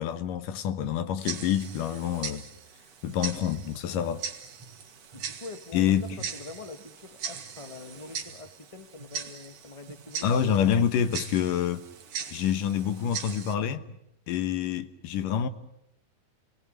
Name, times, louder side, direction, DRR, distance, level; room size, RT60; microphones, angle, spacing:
voice 1, 0.0-2.4 3.0-4.3 5.7-6.2 10.2-11.8 12.3-13.8 14.3-15.5, left 9 dB, 80° left, 2.8 m, -27 dB
Tick-tock, 1.2-13.6, right 6 dB, 55° right, 2.7 m, -40 dB
voice 2, 5.1-10.3, left 3 dB, 25° left, 0.6 m, -44 dB
29.5 x 18.5 x 10.0 m
omnidirectional pair, 3.7 m